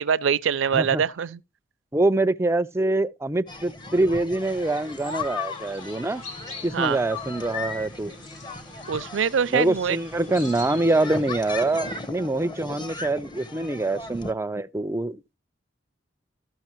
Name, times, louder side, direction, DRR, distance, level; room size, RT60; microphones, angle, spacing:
voice 1, 0.0-1.4 6.7-7.0 8.9-10.0, right 7 dB, 75° right, 0.4 m, -24 dB
voice 2, 1.9-6.2 6.6-8.1 9.5-15.2, right 2 dB, 15° right, 0.4 m, -25 dB
sound 1, 3.5-14.3, left 4 dB, 25° left, 0.8 m, -37 dB
sound 2, 4.4-12.1, left 3 dB, 80° left, 2.8 m, -46 dB
14.5 x 6.1 x 2.9 m
head